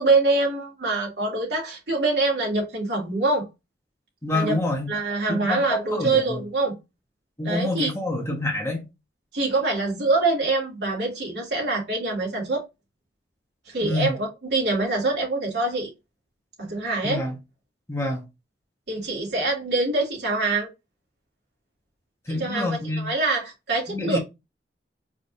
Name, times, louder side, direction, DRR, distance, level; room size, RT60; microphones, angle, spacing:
voice 1, 0.0-3.5 4.3-4.6 4.9-6.7 7.4-7.9 9.3-12.6 13.7-15.9 16.6-17.2 18.9-20.7 22.3-24.2, right 3 dB, 70° right, 2.8 m, -24 dB
voice 2, 4.2-4.9 5.3-6.4 7.4-8.8 13.8-14.1 17.0-17.4 17.9-18.2 22.3-23.1 23.9-24.2, left 1 dB, 15° left, 1.3 m, -27 dB
5.0 x 3.8 x 2.6 m
head